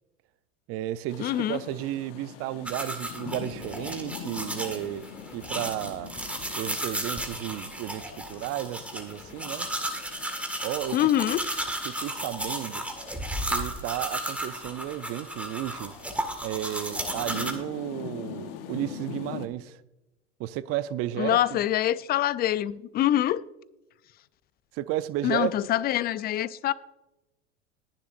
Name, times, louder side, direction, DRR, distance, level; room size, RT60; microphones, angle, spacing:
voice 1, 0.7-5.0 5.3-6.1 6.6-9.7 10.6-11.0 11.8-12.8 13.5-15.9 16.4-19.8 20.4-21.6 24.7-25.5, right 14 dB, 40° right, 0.6 m, -33 dB
Rain, 1.1-19.5, left 9 dB, 55° left, 1.2 m, -44 dB
voice 2, 1.2-1.6 10.9-11.4 21.2-23.4 25.2-26.7, left 12 dB, 25° left, 0.5 m, -25 dB
sound 1, 2.7-17.5, right 1 dB, 5° right, 1.9 m, -34 dB
21.0 x 7.4 x 2.6 m
hypercardioid pair, 85°, 36 cm